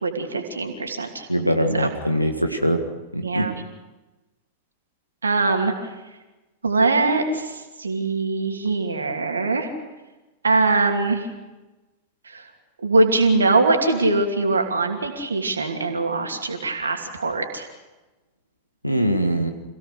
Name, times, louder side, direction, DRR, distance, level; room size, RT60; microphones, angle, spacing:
voice 1, 0.0-1.3 1.8-1.9 3.2-3.5 5.2-5.7 6.6-9.7 10.4-11.3 12.2-12.4 12.8-17.7, right 3 dB, 75° right, 4 dB, 2.8 m, -22 dB
voice 2, 1.3-2.8 3.1-3.5 18.8-19.5, equal, 90° left, 6 dB, 1.9 m, -22 dB
27.0 x 16.5 x 6.6 m, 1.1 s
figure-of-eight pair, 90°, 0 cm